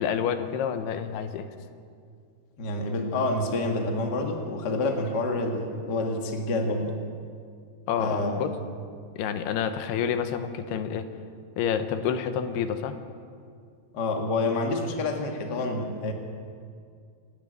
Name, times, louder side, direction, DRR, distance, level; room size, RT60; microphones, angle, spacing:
voice 1, 0.0-1.5 7.9-8.5 9.2-11.1 11.6-13.0, left 8 dB, 90° left, 9 dB, 3.0 m, -28 dB
voice 2, 2.6-6.9 8.0-8.5 13.9-16.1, left 2 dB, 35° left, 2 dB, 1.7 m, -28 dB
28.0 x 9.9 x 9.3 m, 2.2 s
omnidirectional pair, 4.6 m